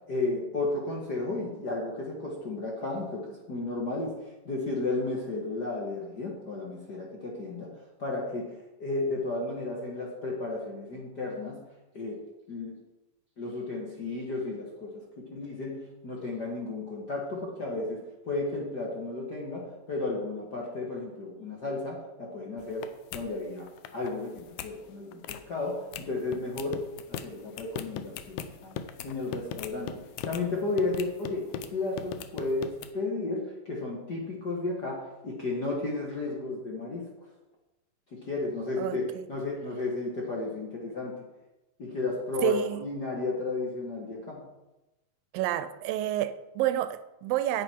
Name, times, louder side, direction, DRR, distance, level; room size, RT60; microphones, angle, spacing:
voice 1, 0.1-7.7 8.0-8.5 8.8-11.6 11.9-12.2 12.5-12.7 13.4-26.8 27.1-37.1 38.1-41.2 41.8-44.4, left 3 dB, 50° left, 1.3 m, -33 dB
sound 1, 22.6-22.9 23.1-23.2 23.6-24.1 24.4-24.7 25.1-25.4 25.9-26.0 26.3-30.4 30.8-31.7 32.0-32.9, left 8 dB, 75° left, 1.9 m, -38 dB
voice 2, 38.8-39.3 42.4-42.8 45.3-47.6, right 12 dB, 85° right, 2.3 m, -29 dB
9.3 x 9.1 x 4.5 m
omnidirectional pair, 4.0 m